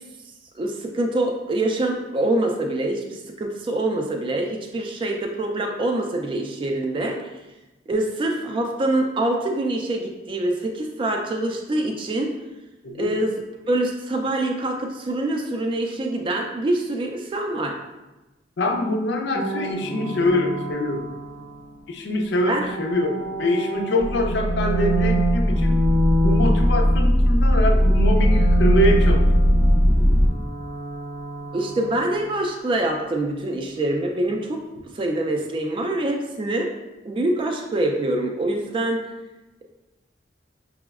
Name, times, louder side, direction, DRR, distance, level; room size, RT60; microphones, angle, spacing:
voice 1, 0.6-7.3 7.9-12.3 13.0-13.3 13.7-17.8 22.5-22.7 31.5-34.6 34.9-36.7 37.1-39.0, right 1 dB, 30° right, 2 dB, 0.3 m, -25 dB
voice 2, 12.8-13.2 18.6-21.1 21.9-25.8 26.2-29.2, left 1 dB, 75° left, 3 dB, 0.4 m, -24 dB
sound 1, 19.3-21.8 22.4-27.3 27.5-32.5, right 1 dB, 80° right, 0.6 m, -28 dB
sound 2, 24.0-30.3, equal, 20° left, 0.5 m, -19 dB
5.8 x 2.1 x 2.3 m, 1.0 s
head